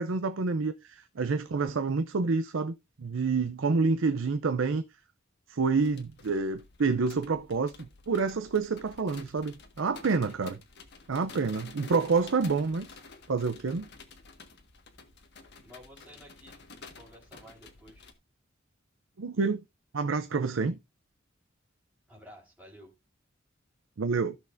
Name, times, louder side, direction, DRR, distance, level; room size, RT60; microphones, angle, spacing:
voice 1, 0.0-4.8 5.5-7.7 8.1-10.6 11.1-12.9 13.3-13.9 19.2-19.6 19.9-20.8 24.0-24.4, right 4 dB, 75° right, 0.6 m, -28 dB
sound 1, 5.6-18.1, left 4 dB, 60° left, 1.6 m, -51 dB
voice 2, 10.1-10.4 15.6-18.1 22.1-22.9, equal, 5° right, 4.3 m, -53 dB
15.5 x 6.4 x 2.6 m
head